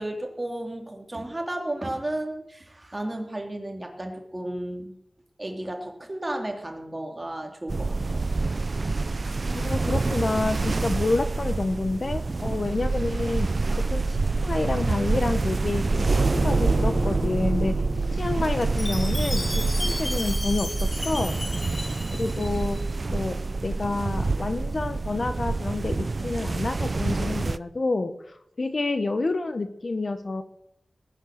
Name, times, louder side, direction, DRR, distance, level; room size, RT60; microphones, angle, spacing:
voice 1, 0.0-4.9 5.4-7.9, right 1 dB, 25° right, 3 dB, 2.9 m, -33 dB
sound 1, 7.7-27.6, right 3 dB, 55° right, 0.5 m, -27 dB
voice 2, 9.5-13.5 13.9-16.2 16.4-17.8 18.1-21.4 22.1-22.8 23.1-30.4, left 3 dB, 55° left, 9 dB, 1.2 m, -28 dB
sound 2, 13.3-20.7, right 3 dB, 70° right, 4.0 m, -28 dB
Chime, 18.8-22.9, left 1 dB, 30° left, 2.2 m, -34 dB
19.0 x 9.7 x 6.6 m, 0.75 s
wide cardioid pair, 75°, 0 cm